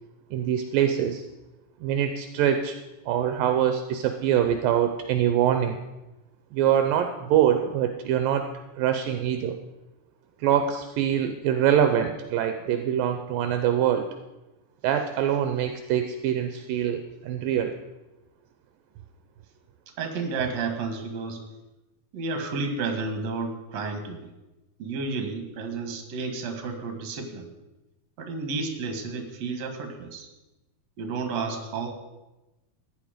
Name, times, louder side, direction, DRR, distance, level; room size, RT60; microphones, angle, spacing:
voice 1, 0.3-1.2 1.8-2.8 3.1-5.8 6.5-8.5 8.8-9.5 10.4-14.1 14.8-17.7, right 9 dB, 80° right, 7 dB, 2.4 m, -24 dB
voice 2, 20.0-21.4 22.1-24.3 24.8-27.5 28.2-30.3 31.0-31.9, right 4 dB, 55° right, 6 dB, 2.6 m, -31 dB
15.0 x 10.5 x 5.1 m, 1.0 s
omnidirectional pair, 4.2 m